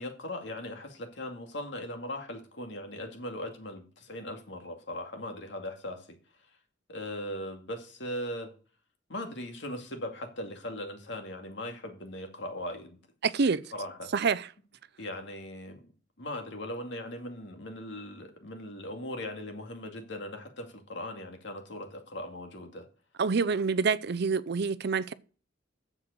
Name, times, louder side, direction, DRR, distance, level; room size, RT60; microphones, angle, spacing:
voice 1, 0.0-6.6 6.9-8.5 9.1-13.0 13.7-14.1 15.0-15.9 16.2-22.9, left 1 dB, 70° left, 2.3 m, -39 dB
voice 2, 13.2-13.6 14.1-14.5 23.2-25.1, right 5 dB, 60° right, 0.5 m, -27 dB
9.9 x 7.5 x 6.6 m
head